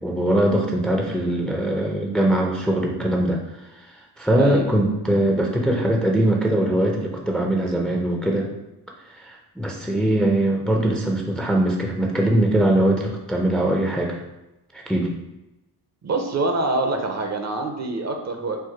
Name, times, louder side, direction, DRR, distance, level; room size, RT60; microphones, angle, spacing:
voice 1, 0.0-3.4 4.2-8.5 9.2-14.2 14.9-15.1, right 1 dB, ahead, 0 dB, 0.5 m, -21 dB
voice 2, 4.3-4.6 16.0-18.6, right 2 dB, 40° right, 4 dB, 0.7 m, -25 dB
4.6 x 2.2 x 4.6 m, 0.96 s
cardioid pair, 110°, 41 cm